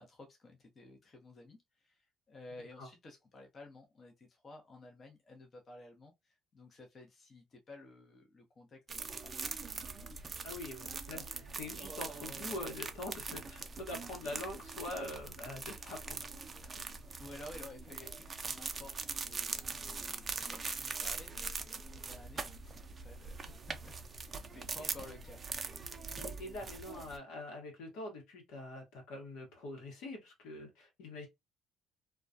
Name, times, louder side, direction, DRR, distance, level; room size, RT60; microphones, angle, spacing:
voice 1, 0.0-9.8 17.2-25.4, left 2 dB, 40° left, 0.8 m, -54 dB
sound 1, 8.9-27.2, right 4 dB, 35° right, 0.4 m, -42 dB
voice 2, 10.4-16.3 16.6-16.7 26.2-31.3, left 2 dB, 80° left, 1.0 m, -44 dB
2.2 x 2.2 x 2.6 m
supercardioid pair, 80°, 0 cm